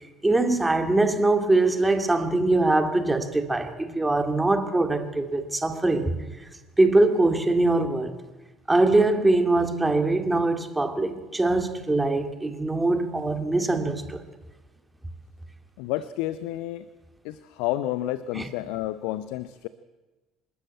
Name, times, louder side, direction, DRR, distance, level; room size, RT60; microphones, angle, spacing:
voice 1, 0.2-6.2 6.8-8.2 8.7-14.2 18.3-18.5, right 2 dB, 10° right, 7 dB, 2.3 m, -22 dB
voice 2, 15.8-16.8 17.2-19.7, left 14 dB, 60° left, 16 dB, 0.6 m, -30 dB
26.5 x 13.0 x 8.6 m, 1.2 s
figure-of-eight pair, 60°, 0 cm